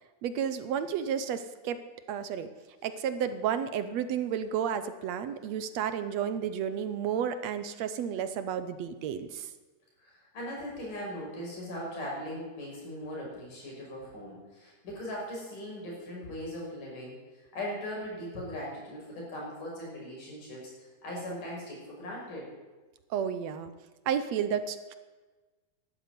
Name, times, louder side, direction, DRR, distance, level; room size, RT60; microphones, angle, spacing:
voice 1, 0.2-1.8 2.1-2.5 2.8-9.5 23.1-23.7 24.1-24.9, right 8 dB, 70° right, 11 dB, 1.9 m, -32 dB
voice 2, 10.0-17.2 17.5-22.5, equal, 85° left, -3 dB, 7.5 m, -39 dB
13.0 x 11.5 x 9.5 m, 1.3 s
omnidirectional pair, 3.6 m